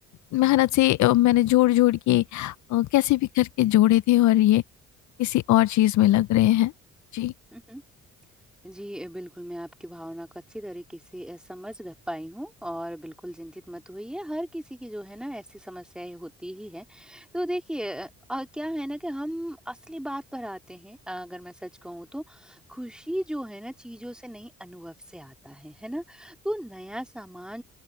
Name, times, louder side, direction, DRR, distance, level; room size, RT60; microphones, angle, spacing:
voice 1, 0.3-4.6 5.2-6.7 7.1-7.3, left 15 dB, 70° left, 0.5 m, -20 dB
voice 2, 7.5-7.8 8.6-27.6, equal, 5° right, 2.8 m, -36 dB
open air
cardioid pair, 90°, 30 cm